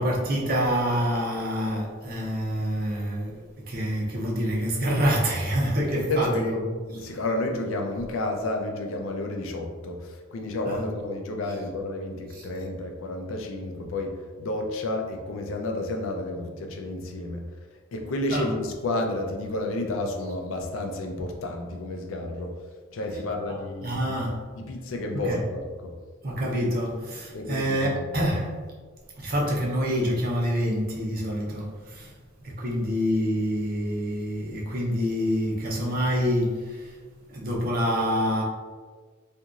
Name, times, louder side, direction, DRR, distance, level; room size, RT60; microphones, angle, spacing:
voice 1, 0.0-7.1 10.7-10.9 11.4-11.6 12.3-12.5 18.3-18.6 23.1-23.2 23.5-24.4 25.1-25.5 26.2-28.7 29.2-32.1 32.4-37.0 37.3-38.4, equal, 45° right, 0.6 m, -27 dB
voice 2, 5.9-6.5 6.9-17.4 17.9-22.6 22.9-24.1 24.6-25.9 27.3-28.1, left 2 dB, 70° left, 0.4 m, -31 dB
2.9 x 2.5 x 2.4 m
head